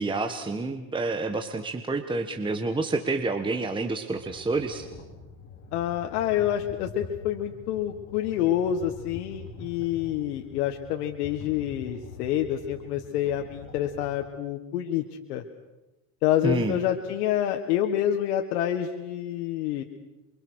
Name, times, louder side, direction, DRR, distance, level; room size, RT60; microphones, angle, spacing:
voice 1, 0.0-4.9 16.4-16.8, right 3 dB, 10° right, 5 dB, 1.5 m, -28 dB
sound 1, 4.1-14.1, left 4 dB, 35° left, 5.8 m, -45 dB
voice 2, 5.7-15.4 16.2-19.8, left 11 dB, 90° left, 4 dB, 1.8 m, -27 dB
28.5 x 24.0 x 6.5 m, 1.1 s
supercardioid pair, 130°, 45 cm